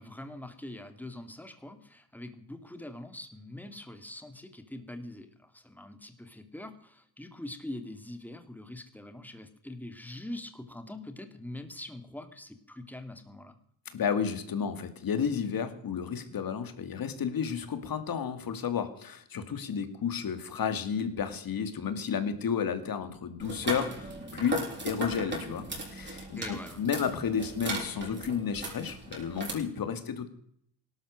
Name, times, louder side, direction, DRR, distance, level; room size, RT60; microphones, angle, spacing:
voice 1, 0.0-13.6 26.4-26.8, left 1 dB, 5° left, 8 dB, 2.3 m, -43 dB
voice 2, 13.9-26.4 26.8-30.3, left 7 dB, 50° left, 10 dB, 2.5 m, -32 dB
sound 1, 23.4-29.5, right 1 dB, 25° right, 7.0 m, -37 dB
17.5 x 12.5 x 6.5 m, 0.68 s
cardioid pair, 95°, 45 cm